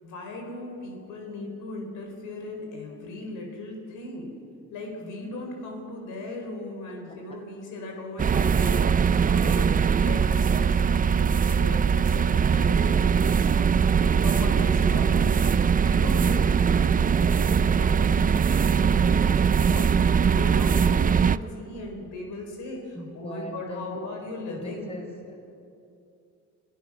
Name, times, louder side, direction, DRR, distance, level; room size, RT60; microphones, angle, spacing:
voice 1, 0.0-4.3 4.7-24.9, left 2 dB, 85° left, 1 dB, 4.4 m, -38 dB
sound 1, 8.2-21.4, right 6 dB, 30° right, 0.5 m, -21 dB
voice 2, 22.9-24.0 24.6-25.4, equal, 20° left, 1 dB, 5.2 m, -39 dB
26.0 x 16.0 x 6.3 m, 2.6 s
cardioid pair, 90°, 30 cm